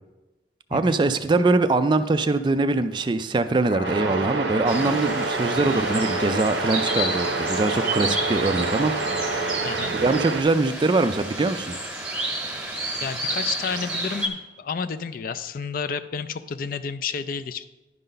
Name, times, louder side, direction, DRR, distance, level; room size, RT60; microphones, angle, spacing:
voice 1, 0.7-9.5 9.9-11.8, right 3 dB, 25° right, 10 dB, 0.3 m, -23 dB
sound 1, 3.7-9.6, left 1 dB, 70° left, 1.0 m, -31 dB
sound 2, 3.8-10.4, right 4 dB, 80° right, 0.6 m, -29 dB
sound 3, 4.7-14.3, right 1 dB, 5° right, 1.0 m, -31 dB
voice 2, 9.6-9.9 13.0-17.6, left 6 dB, 50° left, 13 dB, 0.4 m, -31 dB
11.0 x 5.4 x 3.9 m, 1.1 s
head